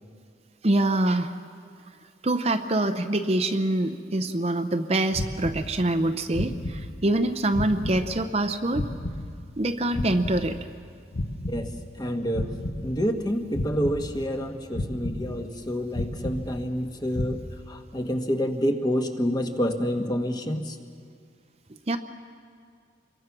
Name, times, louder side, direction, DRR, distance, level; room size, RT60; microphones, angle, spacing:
voice 1, 0.6-1.3 2.2-8.8 9.6-10.6 21.9-22.0, right 1 dB, 35° right, 9 dB, 0.7 m, -25 dB
sound 1, 5.1-6.1 6.3-7.3 7.5-9.7 9.9-12.1 12.3-13.3 13.5-14.5 14.7-15.7 15.9-16.9 17.1-17.3, left 1 dB, 55° left, 1.2 m, -33 dB
voice 2, 11.5-12.5 12.8-17.4 17.7-20.8, equal, 20° left, 5 dB, 1.3 m, -28 dB
27.0 x 22.5 x 6.1 m, 2.2 s
head